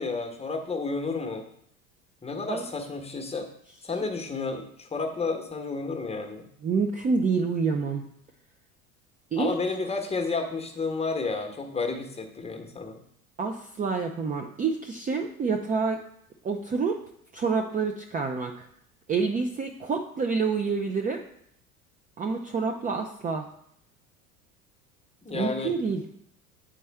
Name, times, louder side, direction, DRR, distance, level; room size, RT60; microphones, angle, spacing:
voice 1, 0.0-1.5 2.2-3.5 3.8-6.5 9.4-13.0 25.2-25.8, left 4 dB, 15° left, 4 dB, 1.1 m, -31 dB
voice 2, 6.6-8.0 9.3-9.5 13.4-16.0 16.4-17.0 17.3-18.7 19.1-21.2 22.2-23.5 25.3-26.0, right 5 dB, 20° right, 3 dB, 0.5 m, -27 dB
8.7 x 4.2 x 3.4 m, 0.71 s
figure-of-eight pair, 75°, 44 cm